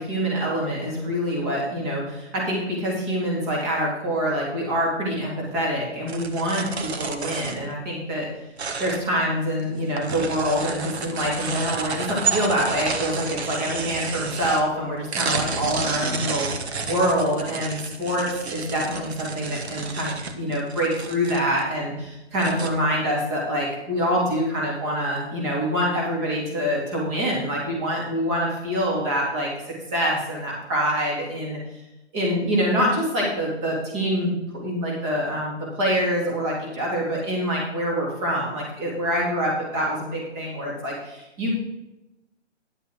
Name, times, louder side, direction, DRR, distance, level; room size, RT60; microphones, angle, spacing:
voice 1, 0.1-2.0 2.5-2.6 2.8-6.6 7.1-8.2 8.8-12.0 12.3-16.5 16.8-18.3 18.5-20.1 20.4-21.9 22.3-29.5 29.9-31.6 32.1-34.3 34.6-35.5 35.8-40.0 40.4-40.9 41.4-41.5, equal, 25° right, -3 dB, 3.5 m, -25 dB
sound 1, 6.1-7.7 8.6-9.3 9.6-14.8 15.1-21.6 22.0-22.1 22.4-22.7, right 5 dB, 65° right, 1.4 m, -30 dB
11.0 x 7.8 x 4.8 m, 0.94 s
hypercardioid pair, 160°, 35 cm